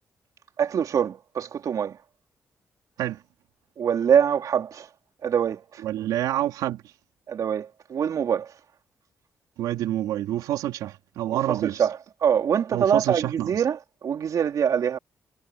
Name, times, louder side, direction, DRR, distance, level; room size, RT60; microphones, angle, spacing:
voice 1, 0.6-2.0 3.8-4.9 5.2-5.8 7.3-8.5 11.3-15.0, right 8 dB, 65° right, 4.0 m, -24 dB
voice 2, 5.8-6.8 9.6-11.9 12.7-13.5, right 13 dB, 90° right, 3.2 m, -27 dB
supercardioid pair, 55°, 6 cm